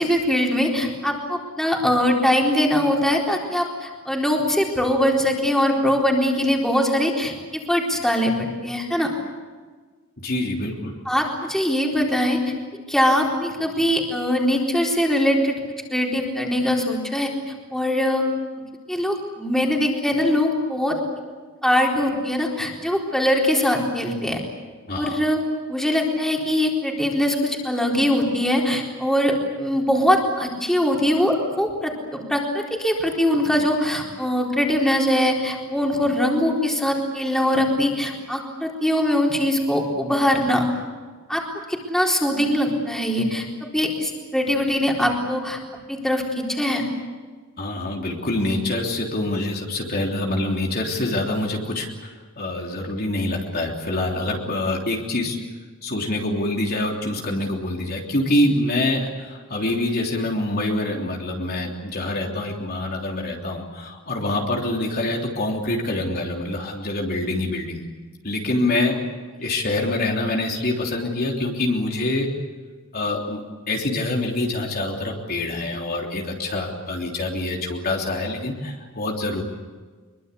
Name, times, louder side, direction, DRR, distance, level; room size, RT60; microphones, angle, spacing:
voice 1, 0.0-9.1 11.1-12.4 12.7-15.6 15.9-17.3 17.7-18.3 18.9-21.0 21.6-24.4 24.9-25.4 25.7-40.7 41.3-41.4 41.7-45.6 45.9-46.8, left 1 dB, ahead, -1 dB, 4.1 m, -22 dB
voice 2, 10.2-10.9 24.9-25.2 47.6-55.4 55.8-67.8 68.2-69.0 69.4-72.3 72.9-79.4, left 2 dB, 45° left, 0 dB, 3.3 m, -25 dB
24.5 x 23.0 x 8.4 m, 1.4 s
head